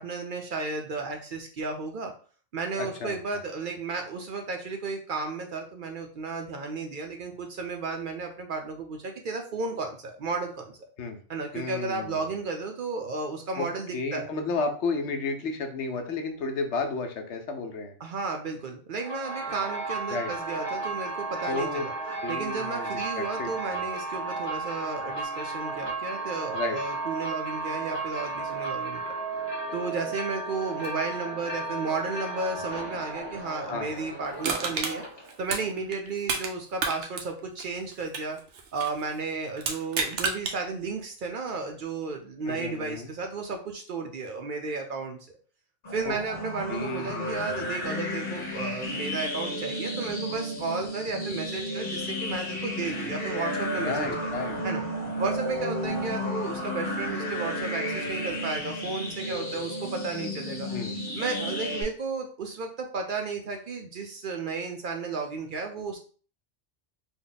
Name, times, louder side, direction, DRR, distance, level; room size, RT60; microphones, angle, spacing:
voice 1, 0.0-2.1 2.5-10.8 11.3-14.3 18.0-21.9 22.3-29.1 29.7-35.0 35.4-38.4 38.7-45.2 45.9-54.3 54.6-54.8 55.2-60.7 61.1-66.0, right 4 dB, 60° right, 3 dB, 0.6 m, -33 dB
voice 2, 2.8-3.4 11.0-11.2 11.5-12.3 13.6-13.7 13.9-17.9 20.1-20.3 21.4-21.9 22.2-23.8 26.5-26.8 33.7-33.9 42.4-43.1 46.0-46.2 46.7-47.7 53.8-54.6 60.7-61.0, left 3 dB, 80° left, 5 dB, 1.0 m, -32 dB
sound 1, 19.0-35.4, right 3 dB, 25° left, 0.8 m, -34 dB
Crushing, 34.4-36.5 36.8-39.0 39.6-40.6 41.0-41.1, right 4 dB, 85° right, 1.0 m, -31 dB
sound 2, 45.8-61.8, equal, 50° left, 1.1 m, -32 dB
3.5 x 2.2 x 3.8 m, 0.42 s
omnidirectional pair, 1.2 m